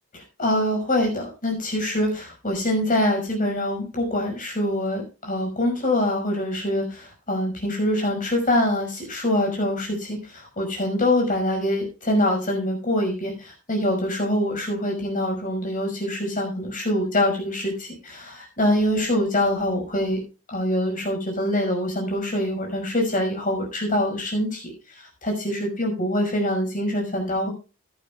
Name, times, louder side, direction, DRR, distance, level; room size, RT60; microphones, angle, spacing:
voice 1, 0.1-20.2 20.5-27.5, left 1 dB, 35° left, 2 dB, 5.6 m, -24 dB
16.0 x 11.0 x 2.4 m, 0.31 s
head